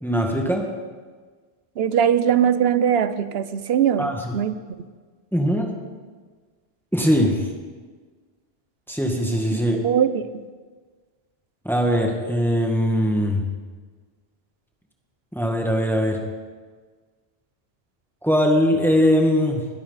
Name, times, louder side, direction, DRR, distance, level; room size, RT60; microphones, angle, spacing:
voice 1, 0.0-0.7 4.0-4.4 5.3-5.7 6.9-7.5 8.9-9.8 11.6-13.5 15.3-16.2 18.2-19.6, equal, ahead, 1 dB, 1.8 m, -21 dB
voice 2, 1.8-4.5 9.8-10.3, right 8 dB, 75° right, 13 dB, 0.9 m, -20 dB
21.5 x 12.5 x 4.1 m, 1.5 s
omnidirectional pair, 1.0 m